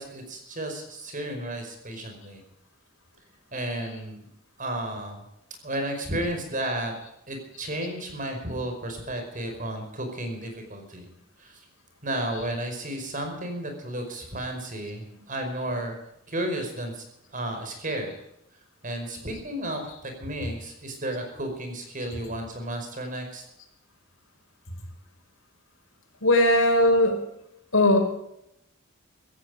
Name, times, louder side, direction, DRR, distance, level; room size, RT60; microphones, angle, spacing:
voice 1, 0.0-2.4 3.5-4.3 4.6-5.2 5.6-7.0 7.3-11.1 11.4-11.6 12.0-16.0 16.3-17.0 17.3-18.2 18.8-23.4, right 1 dB, 40° right, 5 dB, 5.2 m, -33 dB
voice 2, 26.2-27.2 27.7-28.0, left 1 dB, 80° left, 2 dB, 5.6 m, -19 dB
16.5 x 16.0 x 5.1 m, 0.80 s
head